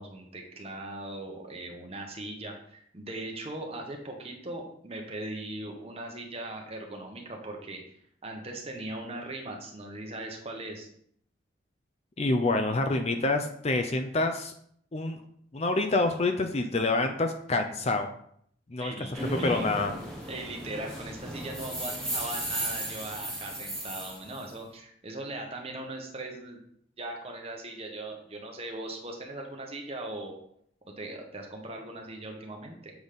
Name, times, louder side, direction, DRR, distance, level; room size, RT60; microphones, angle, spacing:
voice 1, 0.0-8.0 8.2-10.9 18.8-20.0 20.3-26.6 27.0-30.4 31.0-32.9, right 2 dB, 30° right, 1 dB, 1.2 m, -39 dB
voice 2, 12.2-14.5 14.9-15.2 15.5-18.1 18.7-18.9 19.3-19.9, left 2 dB, 30° left, 6 dB, 0.5 m, -27 dB
sound 1, 19.1-24.5, right 1 dB, ahead, 1.4 m, -35 dB
7.1 x 4.0 x 5.1 m, 0.67 s
head